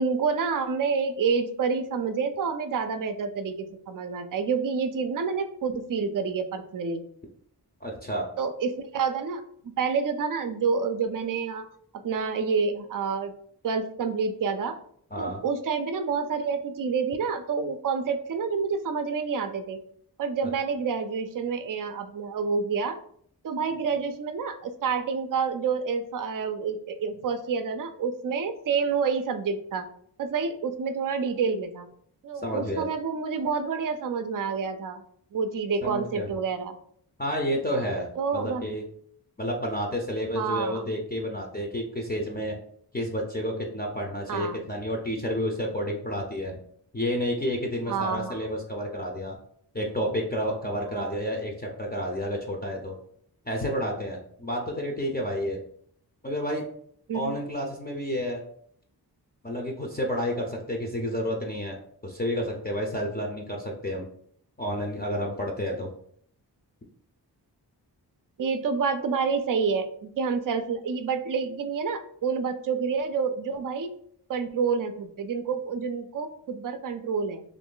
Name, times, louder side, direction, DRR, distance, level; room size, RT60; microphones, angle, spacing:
voice 1, 0.0-7.0 8.4-11.7 12.0-13.3 13.6-14.7 15.2-19.8 20.2-23.0 23.4-29.9 30.2-31.9 32.2-35.0 35.3-36.7 38.2-38.7 40.3-40.9 44.3-44.6 47.9-48.4 51.0-51.1 57.1-57.3 68.4-73.9 74.3-77.4, right 5 dB, 50° right, 9 dB, 0.5 m, -28 dB
voice 2, 7.8-8.3 15.1-15.4 32.4-32.8 35.8-36.3 37.2-38.1 38.3-38.8 39.4-42.6 42.9-46.6 46.9-49.4 49.7-52.9 53.5-55.6 56.2-56.6 57.1-58.4 59.4-64.1 64.6-65.9, equal, 25° left, 0 dB, 0.5 m, -30 dB
3.0 x 2.6 x 3.7 m, 0.63 s
wide cardioid pair, 105°, 42 cm